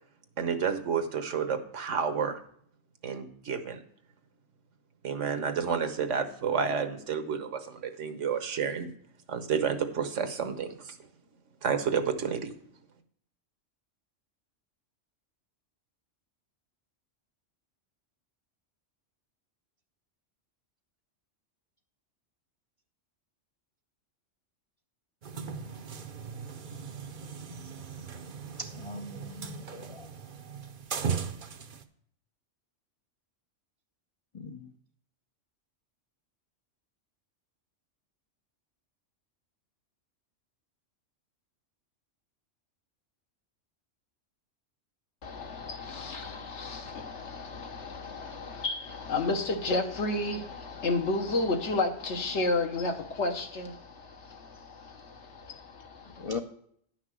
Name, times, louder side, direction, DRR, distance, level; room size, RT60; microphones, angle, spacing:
voice 1, 0.4-2.4 3.0-3.8 5.0-8.9 9.3-11.0 11.6-12.5, right 6 dB, 75° right, 1.3 m, -30 dB
sound 1, 25.2-31.8, right 6 dB, 50° right, 0.7 m, -38 dB
voice 2, 28.6-30.1 34.3-34.7 56.2-56.4, left 3 dB, 40° left, 0.5 m, -39 dB
voice 3, 45.2-56.4, left 2 dB, 70° left, 1.4 m, -32 dB
10.5 x 6.0 x 6.1 m
omnidirectional pair, 1.3 m